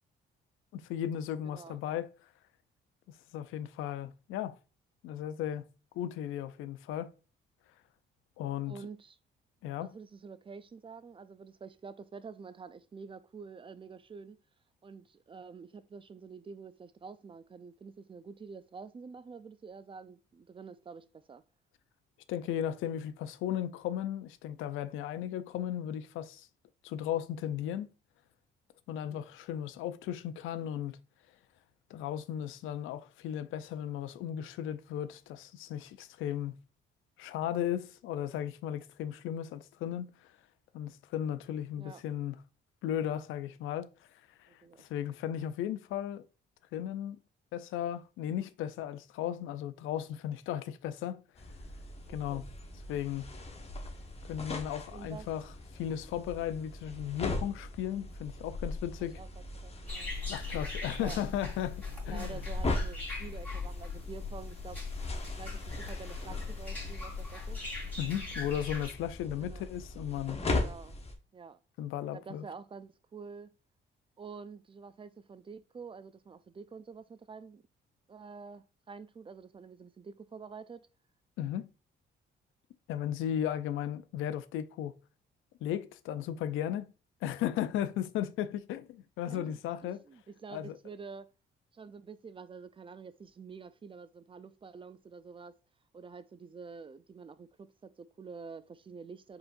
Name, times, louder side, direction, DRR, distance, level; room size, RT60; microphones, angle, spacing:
voice 1, 0.7-2.1 3.1-4.6 5.0-5.6 5.9-7.1 8.4-8.7 9.6-9.9 22.3-26.5 26.8-27.9 28.9-31.0 31.9-36.5 37.2-40.3 40.7-42.4 42.8-46.3 46.7-47.2 47.5-51.2 52.1-52.4 52.9-53.2 54.2-55.5 55.7-59.2 60.3-62.4 68.0-70.4 71.8-72.4 81.4-81.7 82.9-84.9 85.6-86.9 87.2-90.0 90.5-90.8, left 10 dB, 90° left, 0.5 m, -36 dB
voice 2, 1.4-1.8 8.6-9.2 9.8-14.4 14.8-21.4 29.0-29.2 41.8-42.0 44.5-44.9 52.1-52.4 54.9-55.3 59.1-59.3 59.6-60.1 61.0-61.2 62.1-67.6 69.4-69.7 70.5-71.0 71.3-71.6 72.1-73.5 74.2-77.6 78.1-80.9 89.3-91.3 91.7-95.6 95.9-99.4, right 5 dB, 25° right, 0.4 m, -48 dB
sound 1, 51.3-71.1, left 2 dB, 30° left, 1.1 m, -39 dB
sound 2, 59.9-68.9, left 4 dB, 10° left, 2.7 m, -39 dB
4.9 x 3.9 x 2.5 m
cardioid pair, 90°, 20 cm